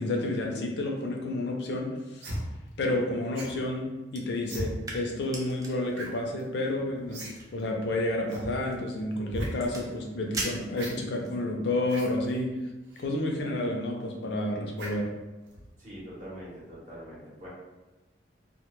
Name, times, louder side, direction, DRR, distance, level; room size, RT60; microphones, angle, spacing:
voice 1, 0.0-2.2 2.8-7.3 7.5-12.6 13.0-15.1, left 1 dB, 65° left, 1 dB, 0.4 m, -30 dB
sound 1, 2.2-2.4 3.4-3.6 4.4-4.7 5.9-6.1 6.4-6.5 7.1-7.3 7.6-7.7 8.3-8.5 9.2-9.5 10.7-10.9 11.8-12.1 12.9-13.1 14.8-15.1 15.5-15.7, equal, 80° right, 0.6 m, -37 dB
sound 2, 4.1-11.4, right 2 dB, 20° right, 0.3 m, -43 dB
voice 2, 15.8-17.5, equal, 40° right, -7 dB, 0.7 m, -43 dB
2.1 x 2.1 x 3.0 m, 1.1 s
head